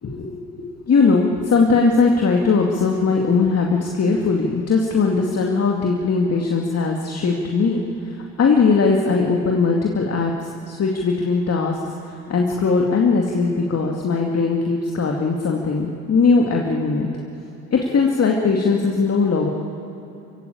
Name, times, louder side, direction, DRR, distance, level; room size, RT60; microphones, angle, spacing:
voice 1, 0.0-11.8 12.3-17.1 17.7-19.5, left 4 dB, 30° left, 0 dB, 2.4 m, -19 dB
28.0 x 16.5 x 8.8 m, 3.0 s
figure-of-eight pair, 60°, 47 cm